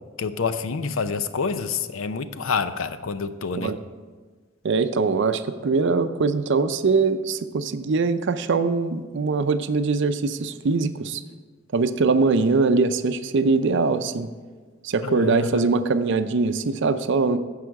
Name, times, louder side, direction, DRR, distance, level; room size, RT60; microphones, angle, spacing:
voice 1, 0.2-3.7 15.0-15.7, left 5 dB, 85° left, 11 dB, 0.6 m, -27 dB
voice 2, 4.6-11.2 11.7-14.3 14.8-17.4, right 4 dB, 65° right, 10 dB, 0.5 m, -22 dB
15.0 x 5.6 x 4.7 m, 1.4 s
head